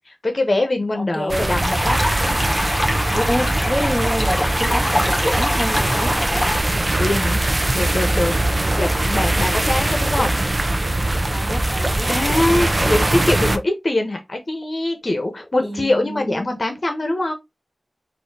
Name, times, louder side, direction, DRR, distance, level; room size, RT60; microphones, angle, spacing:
voice 1, 0.1-2.0 7.0-7.4 7.7-10.4 12.1-17.3, left 2 dB, 50° left, 1.1 m, -23 dB
voice 2, 1.0-1.6 3.1-6.5 8.3-8.8 11.3-12.1 12.8-13.1 15.6-16.5, equal, 10° right, 2.0 m, -27 dB
sound 1, 1.3-13.6, right 1 dB, 35° right, 0.7 m, -21 dB
sound 2, 1.6-6.6, left 1 dB, 20° left, 1.7 m, -24 dB
4.1 x 2.8 x 4.6 m
wide cardioid pair, 50°, 0 cm